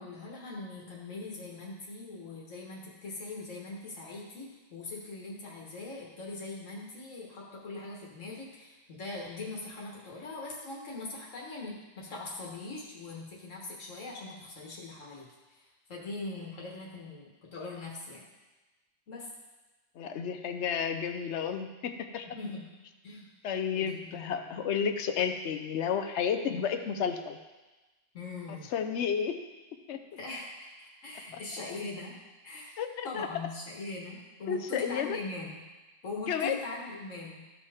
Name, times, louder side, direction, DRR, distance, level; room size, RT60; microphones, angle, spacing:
voice 1, 0.0-18.2 19.1-19.3 22.3-22.6 23.0-23.3 23.7-24.5 28.1-28.7 30.2-32.2 32.4-32.8 33.0-35.6 36.0-37.5, left 3 dB, 85° left, -3 dB, 1.9 m, -41 dB
voice 2, 20.0-22.3 23.4-27.4 28.7-29.4 29.9-30.0 31.3-31.4 32.8-33.3 34.5-35.2 36.3-36.6, left 7 dB, 65° left, 7 dB, 1.0 m, -31 dB
14.0 x 5.4 x 3.6 m, 1.1 s
omnidirectional pair, 1.3 m